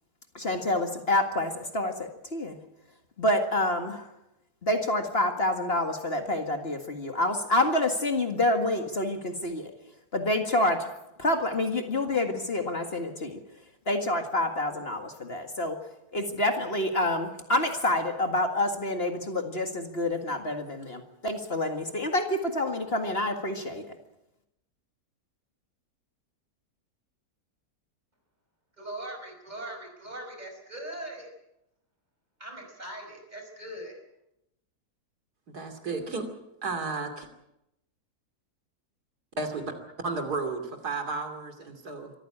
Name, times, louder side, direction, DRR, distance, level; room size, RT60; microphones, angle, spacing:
voice 1, 0.3-2.6 3.2-4.1 4.6-9.7 10.1-10.9 11.2-13.4 13.9-15.8 16.1-23.9, left 1 dB, 40° left, 5 dB, 2.1 m, -27 dB
voice 2, 28.8-31.3 32.4-34.0, right 1 dB, 25° right, 4 dB, 5.2 m, -40 dB
voice 3, 35.5-36.3 36.6-37.3 39.4-42.1, right 3 dB, 80° right, 7 dB, 3.3 m, -33 dB
24.5 x 15.0 x 8.7 m, 0.87 s
omnidirectional pair, 1.6 m